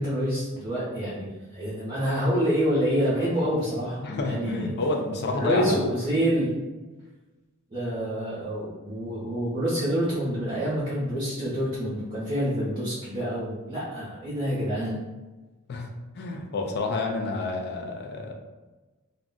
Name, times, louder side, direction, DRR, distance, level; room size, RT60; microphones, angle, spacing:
voice 1, 0.0-4.7 5.3-6.5 7.7-15.0, equal, 25° right, -9 dB, 0.7 m, -27 dB
voice 2, 4.0-5.8 15.7-15.9 16.2-18.3, left 3 dB, 50° left, 2 dB, 0.4 m, -29 dB
2.4 x 2.1 x 3.7 m, 1.2 s
head